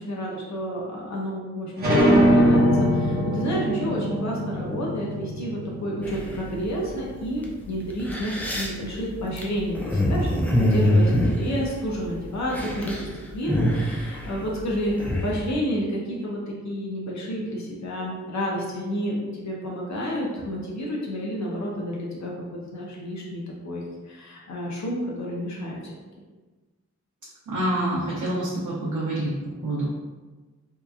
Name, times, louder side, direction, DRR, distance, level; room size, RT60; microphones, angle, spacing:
voice 1, 0.0-25.8, equal, 70° left, -3 dB, 0.6 m, -30 dB
sound 1, 1.8-7.1, equal, 35° right, 0.8 m, -22 dB
sound 2, 6.0-6.7 7.4-7.5 7.9-12.1 12.4-13.1 13.3-15.4, equal, 5° left, 0.3 m, -24 dB
voice 2, 27.5-29.3 29.6-29.9, right 1 dB, 85° right, -6 dB, 0.6 m, -26 dB
2.8 x 2.3 x 2.3 m, 1.3 s
wide cardioid pair, 110°, 29 cm